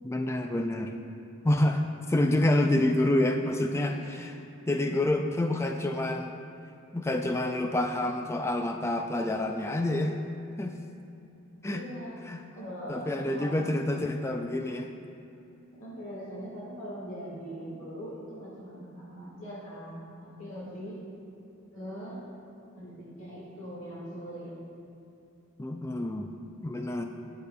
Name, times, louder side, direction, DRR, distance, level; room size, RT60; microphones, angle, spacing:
voice 1, 0.0-0.9 1.4-1.8 2.1-4.4 4.7-6.4 6.9-10.2 10.6-10.8 11.6-11.9 12.3-12.4 12.9-14.9 25.6-26.3 26.6-27.0, left 1 dB, 10° left, 4 dB, 0.3 m, -27 dB
voice 2, 11.6-12.2 12.5-13.7 15.8-21.0 21.7-22.2 22.8-24.5, equal, 65° left, -7 dB, 1.9 m, -41 dB
18.0 x 6.7 x 2.3 m, 2.8 s
head